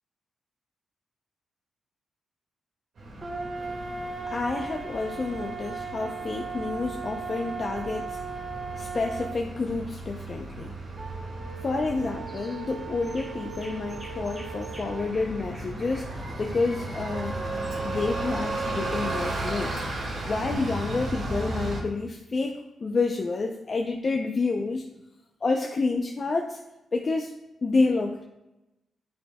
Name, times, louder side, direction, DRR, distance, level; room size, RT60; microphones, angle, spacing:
Bus, 3.0-21.8, right 2 dB, 70° right, 2.0 m, -36 dB
sound 1, 3.2-9.4 11.0-15.2 17.1-19.3, right 4 dB, 35° right, 0.9 m, -37 dB
voice 1, 4.3-8.2 8.7-10.8 11.6-17.4 17.8-19.8 20.2-24.8 25.4-26.6 26.9-27.3 27.6-28.2, left 3 dB, 40° left, 2 dB, 0.6 m, -29 dB
sound 2, 12.3-12.6 13.0-17.8, equal, 10° right, 1.9 m, -50 dB
9.7 x 5.2 x 2.3 m, 0.95 s
cardioid pair, 105°, 0 cm